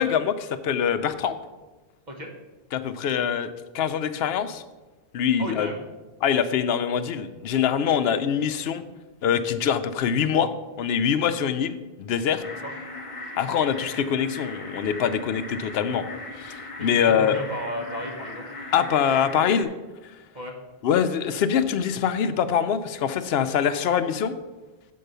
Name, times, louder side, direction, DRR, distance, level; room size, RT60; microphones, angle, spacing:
voice 1, 0.0-1.4 2.7-3.5 3.7-4.6 5.1-5.7 6.2-8.8 9.2-10.5 10.8-12.4 13.4-16.1 16.4-17.4 18.7-19.7 20.8-24.3, left 8 dB, 70° left, 10 dB, 0.8 m, -24 dB
voice 2, 5.4-5.8 12.6-12.7 16.8-18.4 20.3-20.5, equal, 45° right, 1 dB, 1.4 m, -34 dB
sound 1, 12.4-19.6, left 2 dB, 35° left, 0.8 m, -38 dB
7.6 x 4.6 x 6.7 m, 1.2 s
omnidirectional pair, 1.1 m